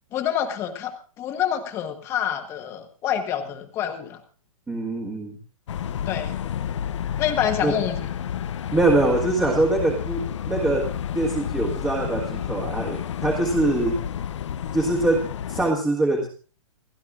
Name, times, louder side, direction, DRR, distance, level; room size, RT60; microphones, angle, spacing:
voice 1, 0.1-4.2 6.1-6.4 7.2-8.1, left 9 dB, 15° left, 7 dB, 1.3 m, -27 dB
voice 2, 4.7-5.4 7.6-7.7 8.7-14.0 14.7-16.3, right 2 dB, 5° right, -3 dB, 1.5 m, -23 dB
sound 1, 5.7-15.7, left 9 dB, 55° left, 0.7 m, -30 dB
29.0 x 11.5 x 2.5 m, 0.39 s
hypercardioid pair, 170°, 18 cm